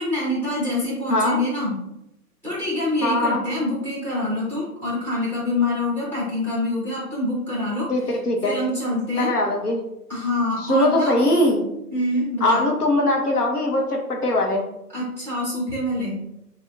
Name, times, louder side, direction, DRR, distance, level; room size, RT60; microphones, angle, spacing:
voice 1, 0.0-1.7 2.4-8.2 8.4-9.3 10.1-11.1 11.9-12.7 14.9-16.2, left 1 dB, 5° left, -7 dB, 1.4 m, -25 dB
voice 2, 1.1-1.4 3.0-3.4 7.9-8.6 9.2-9.8 10.6-11.6 12.4-14.6, left 1 dB, 70° left, 1 dB, 1.1 m, -21 dB
6.3 x 2.7 x 2.6 m, 0.85 s
figure-of-eight pair, 135°, 47 cm